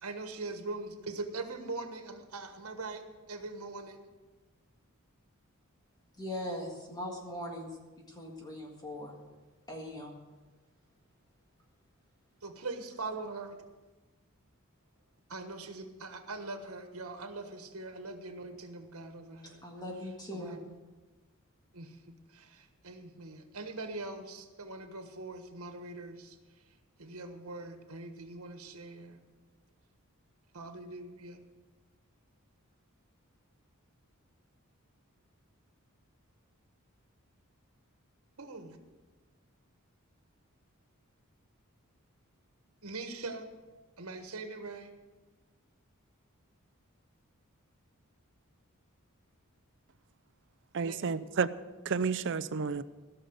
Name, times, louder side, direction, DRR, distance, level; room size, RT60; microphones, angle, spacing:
voice 1, 0.0-4.1 12.4-13.6 15.3-19.7 20.3-20.6 21.7-26.4 27.0-29.2 30.5-31.4 38.4-38.8 42.8-43.5 44.0-44.9 50.8-51.0, right 3 dB, 90° right, 1.4 m, -42 dB
voice 2, 6.2-7.7 8.1-9.1 9.7-10.2 19.4-20.6, left 1 dB, 20° left, 1.8 m, -40 dB
voice 3, 50.7-51.5 51.8-52.8, right 5 dB, 60° right, 0.5 m, -31 dB
16.0 x 6.7 x 8.0 m
head